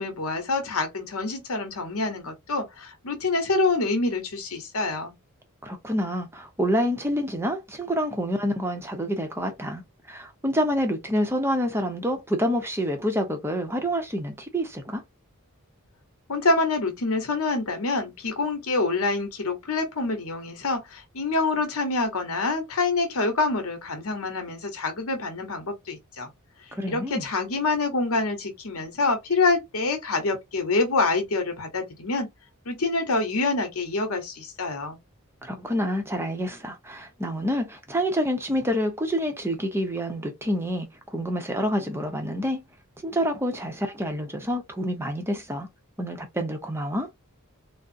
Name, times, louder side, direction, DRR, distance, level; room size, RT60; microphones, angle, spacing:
voice 1, 0.0-5.1 16.3-26.3 26.9-32.3 32.7-35.0, left 3 dB, 70° left, 0.9 m, -26 dB
voice 2, 5.6-9.8 10.1-15.0 26.7-27.3 35.4-42.6 43.0-45.7 46.0-47.1, equal, 10° right, 0.6 m, -27 dB
3.5 x 2.0 x 2.5 m
head